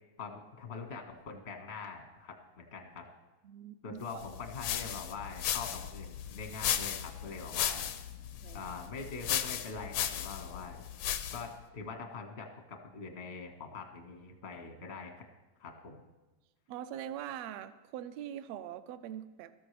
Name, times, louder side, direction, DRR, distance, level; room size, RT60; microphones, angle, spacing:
voice 1, 0.2-3.1 3.8-7.8 8.5-10.8 11.3-15.1 15.6-16.0, left 4 dB, 50° left, 3 dB, 0.7 m, -43 dB
voice 2, 3.4-4.0 8.4-8.6 16.7-19.5, right 10 dB, 75° right, 11 dB, 1.6 m, -42 dB
sound 1, 4.2-11.6, left 10 dB, 75° left, 1.4 m, -36 dB
18.5 x 13.5 x 3.3 m, 1.1 s
omnidirectional pair, 3.4 m